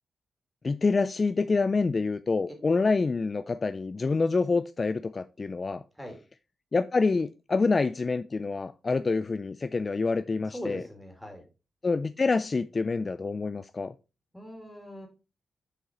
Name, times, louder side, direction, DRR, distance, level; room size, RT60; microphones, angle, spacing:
voice 1, 0.6-5.8 6.7-10.8 11.8-13.9, left 4 dB, 35° left, 0.3 m, -27 dB
voice 2, 10.5-11.4 14.3-15.1, equal, 5° left, 2.4 m, -40 dB
6.5 x 5.2 x 4.3 m
cardioid pair, 100°, 0 cm